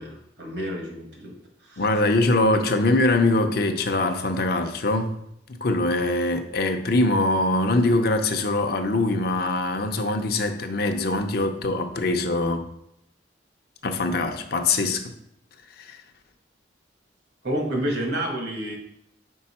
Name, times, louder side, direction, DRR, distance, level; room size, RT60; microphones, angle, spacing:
voice 1, 0.0-1.3 1.6-1.9 17.4-18.8, right 1 dB, 65° right, 1.5 m, -29 dB
voice 2, 1.8-5.2 5.5-12.7 13.8-15.1 15.8-16.0, left 2 dB, 55° left, 0.6 m, -23 dB
5.4 x 4.4 x 4.2 m
head